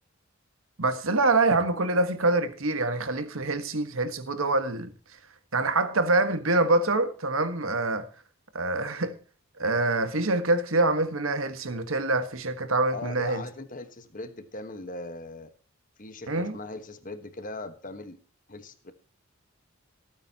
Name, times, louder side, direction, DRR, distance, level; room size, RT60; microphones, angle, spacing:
voice 1, 0.8-4.9 5.5-8.1 8.5-9.2 9.6-13.5 16.3-16.6, right 2 dB, 80° right, 1.4 m, -25 dB
voice 2, 12.9-15.5 16.0-18.2 18.5-18.9, left 2 dB, 40° left, 1.4 m, -39 dB
25.5 x 9.1 x 2.9 m
head